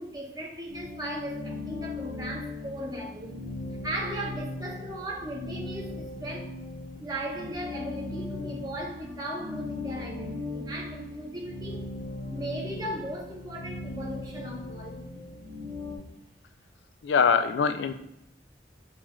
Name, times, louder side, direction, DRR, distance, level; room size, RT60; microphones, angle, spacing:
voice 1, 0.0-3.3 3.8-6.5 7.0-11.9 12.3-15.0, right 1 dB, 20° right, -1 dB, 0.8 m, -37 dB
sound 1, 0.7-16.0, left 2 dB, 60° right, 1.4 m, -38 dB
voice 2, 17.0-17.9, left 6 dB, 85° left, 9 dB, 0.3 m, -23 dB
6.0 x 2.4 x 3.0 m, 0.79 s
head